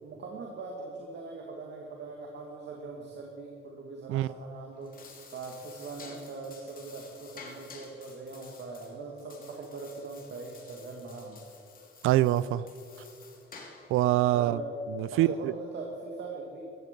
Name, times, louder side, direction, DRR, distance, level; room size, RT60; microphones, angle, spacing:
voice 1, 0.0-11.5 14.3-14.7 15.1-16.6, right 3 dB, 60° right, 0 dB, 2.1 m, -41 dB
sound 1, 4.7-14.0, left 4 dB, 45° left, 2.8 m, -51 dB
voice 2, 12.0-12.7 13.9-14.6 15.0-15.5, right 14 dB, 85° right, 19 dB, 0.5 m, -24 dB
15.5 x 14.5 x 5.3 m, 2.5 s
cardioid pair, 100°, 21 cm